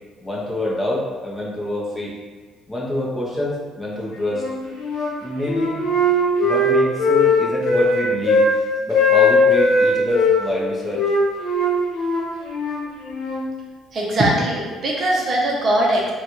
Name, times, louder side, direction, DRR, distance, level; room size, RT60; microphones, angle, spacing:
voice 1, 0.2-2.2 2.7-4.5 5.2-5.9 6.4-8.5 8.9-11.0, left 1 dB, 15° left, -5 dB, 0.6 m, -26 dB
Wind instrument woodwind instrument, 4.3-5.1 5.5-8.5 8.9-10.4 10.9-13.4, left 2 dB, 70° left, 0.8 m, -18 dB
voice 2, 13.9-16.1, right 1 dB, 35° right, -3 dB, 0.6 m, -20 dB
3.9 x 2.2 x 3.0 m, 1.4 s
cardioid pair, 140°, 0 cm